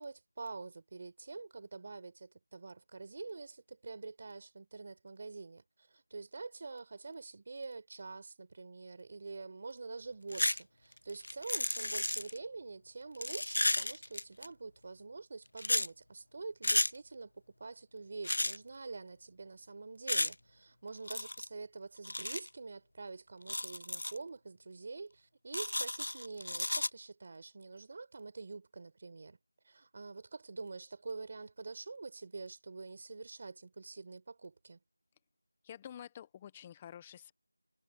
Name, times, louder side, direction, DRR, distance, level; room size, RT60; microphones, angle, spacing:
voice 1, 0.0-5.6 5.9-17.3 17.6-29.4 29.6-34.8, right 3 dB, 30° right, 4.7 m, -46 dB
sound 1, 10.3-10.6 10.9-12.4 13.1-14.5 15.6-15.9 16.6-16.9 18.2-18.6 20.1-20.3 21.1-21.5 22.0-22.5 23.4-24.2 25.5-26.9, left 1 dB, 80° left, 0.3 m, -33 dB
voice 2, 35.6-37.3, left 9 dB, 10° left, 0.9 m, -49 dB
figure-of-eight pair, 175°, 0 cm